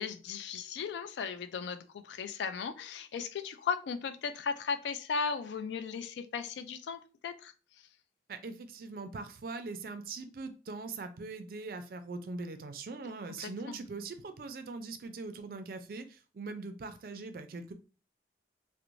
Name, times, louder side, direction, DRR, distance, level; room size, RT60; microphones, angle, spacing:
voice 1, 0.0-7.5 13.4-13.8, left 5 dB, 80° left, 0.3 m, -36 dB
voice 2, 8.3-17.7, right 3 dB, 55° right, 0.3 m, -41 dB
2.5 x 2.0 x 3.0 m
head